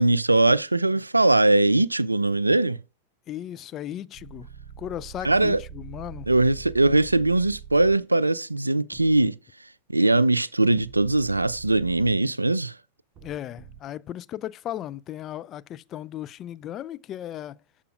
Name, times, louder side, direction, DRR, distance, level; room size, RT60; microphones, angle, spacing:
voice 1, 0.0-2.8 5.2-5.6 6.3-9.4 9.9-12.8, right 2 dB, 85° right, 0.3 m, -21 dB
voice 2, 3.3-4.5 4.8-6.3 13.2-17.6, left 11 dB, 30° left, 0.3 m, -36 dB
sound 1, 4.1-8.0 8.9-9.3 10.8-12.2 13.2-13.8, right 8 dB, 35° right, 0.8 m, -43 dB
13.5 x 4.9 x 2.4 m
figure-of-eight pair, 90°, 0 cm